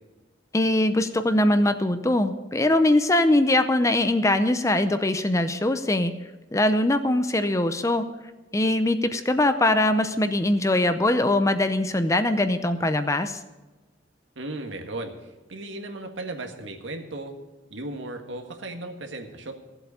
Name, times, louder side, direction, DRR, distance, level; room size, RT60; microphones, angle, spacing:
voice 1, 0.5-6.1 6.5-8.0 8.5-13.4, left 1 dB, 15° left, 10 dB, 0.6 m, -22 dB
voice 2, 14.3-17.3 17.7-19.5, right 2 dB, 75° right, 4 dB, 1.7 m, -36 dB
14.5 x 7.9 x 6.8 m, 1.2 s
head